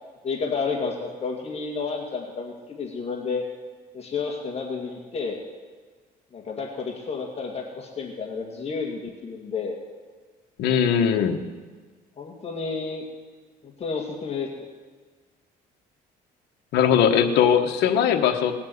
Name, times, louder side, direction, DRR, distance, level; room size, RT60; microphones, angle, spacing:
voice 1, 0.2-3.4 3.9-5.4 6.3-9.8 12.2-13.0 13.6-14.7, left 4 dB, 40° left, 0 dB, 2.2 m, -31 dB
voice 2, 10.6-11.4 16.7-18.5, left 8 dB, 80° left, 5 dB, 1.2 m, -20 dB
19.5 x 7.4 x 8.1 m, 1.4 s
cardioid pair, 110°, 17 cm